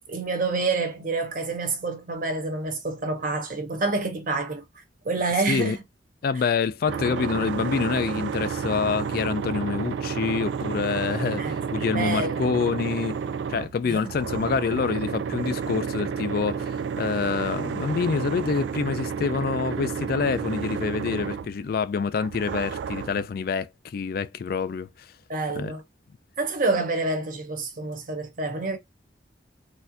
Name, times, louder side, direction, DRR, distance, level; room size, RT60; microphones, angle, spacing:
voice 1, 0.1-4.6 5.0-5.8 7.1-7.3 11.4-11.6 11.9-12.5 13.8-14.1 25.3-25.8 26.4-28.8, right 3 dB, 45° right, 0.8 m, -28 dB
voice 2, 6.2-13.2 13.5-25.1 25.5-25.7, left 5 dB, 55° left, 0.3 m, -27 dB
sound 1, 6.9-21.8 22.2-23.3, right 6 dB, 70° right, 0.3 m, -31 dB
4.1 x 2.5 x 2.6 m
head